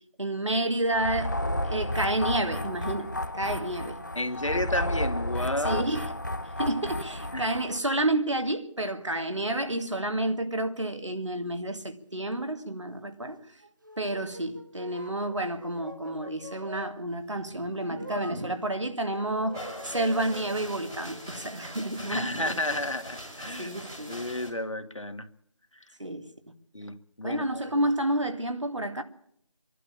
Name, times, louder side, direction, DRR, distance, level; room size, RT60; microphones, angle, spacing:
voice 1, 0.2-1.4 1.6-4.0 5.6-6.1 6.6-13.4 14.0-22.6 23.6-24.2 26.0-26.3 27.2-29.0, right 1 dB, 65° right, 2.3 m, -30 dB
sound 1, 0.9-7.8, left 1 dB, 35° left, 0.9 m, -32 dB
voice 2, 4.1-5.9 7.3-7.5 22.1-23.7 24.1-25.3 26.7-27.8, left 1 dB, 75° left, 1.6 m, -32 dB
sound 2, 13.4-17.0 17.9-18.4 19.0-21.4, right 2 dB, 40° right, 1.3 m, -45 dB
sound 3, 19.5-24.5, equal, 5° right, 1.2 m, -42 dB
25.5 x 11.5 x 8.6 m
figure-of-eight pair, 170°, 16 cm